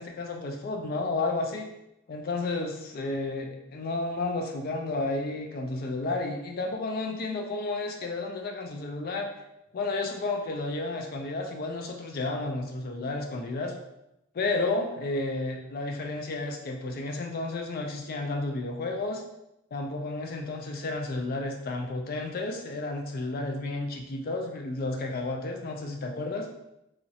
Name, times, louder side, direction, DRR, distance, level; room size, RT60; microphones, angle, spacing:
voice 1, 0.0-1.7 2.1-9.3 9.7-13.8 14.3-19.2 19.7-26.5, left 2 dB, 45° left, 3 dB, 0.4 m, -32 dB
3.0 x 2.4 x 2.7 m, 0.88 s
head